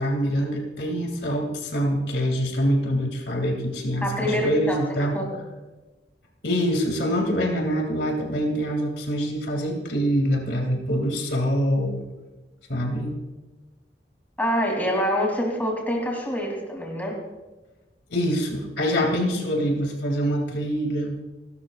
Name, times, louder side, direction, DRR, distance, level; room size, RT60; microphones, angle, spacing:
voice 1, 0.0-5.2 6.4-12.0 12.7-13.2 18.1-21.2, equal, 75° left, 2 dB, 2.7 m, -25 dB
voice 2, 4.0-5.4 14.4-17.2, equal, 10° left, 0 dB, 3.2 m, -26 dB
29.0 x 12.5 x 2.5 m, 1.1 s
head